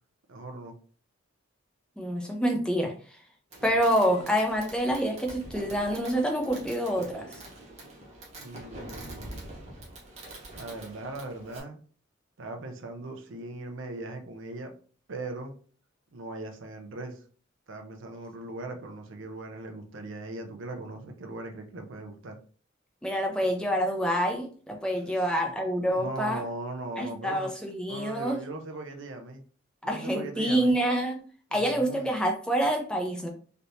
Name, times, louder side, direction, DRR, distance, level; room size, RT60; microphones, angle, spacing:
voice 1, 0.3-0.7 8.4-9.5 10.5-11.8 12.4-14.7 15.1-15.6 16.1-17.2 17.7-22.4 25.1-25.3 25.9-27.5 27.8-29.4 29.8-30.7 31.5-32.1, right 2 dB, 70° right, 0.6 m, -39 dB
voice 2, 2.0-2.9 3.6-7.4 23.0-26.4 27.0-28.4 29.8-31.2 31.5-33.3, equal, 5° left, 0.4 m, -27 dB
Fireworks, 3.5-11.6, right 1 dB, 35° right, 0.9 m, -45 dB
3.3 x 2.8 x 2.7 m
head